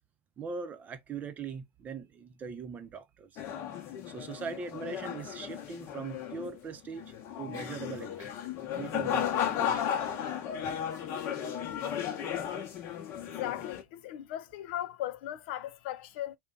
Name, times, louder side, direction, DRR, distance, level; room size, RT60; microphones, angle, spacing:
voice 1, 0.4-3.4 4.0-8.3 8.7-9.9, right 5 dB, 25° right, 0.6 m, -41 dB
sound 1, 3.4-13.8, left 9 dB, 45° left, 0.8 m, -35 dB
voice 2, 13.2-16.4, left 12 dB, 65° left, 0.5 m, -38 dB
2.6 x 2.2 x 3.7 m
supercardioid pair, 120°, 6 cm